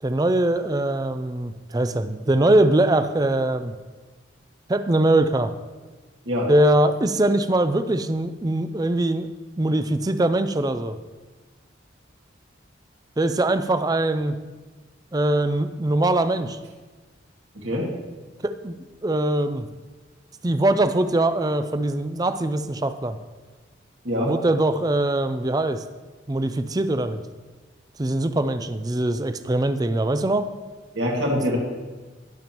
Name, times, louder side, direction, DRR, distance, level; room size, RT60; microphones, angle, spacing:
voice 1, 0.0-3.7 4.7-5.5 6.5-9.3 9.6-11.0 13.2-14.4 15.1-16.6 18.4-18.8 19.0-19.7 20.4-23.2 24.2-25.8 26.3-27.2 28.0-30.5, right 1 dB, 20° right, 10 dB, 0.4 m, -22 dB
voice 2, 30.9-31.6, equal, 70° right, -2 dB, 2.2 m, -24 dB
20.0 x 7.0 x 3.0 m, 1.3 s
head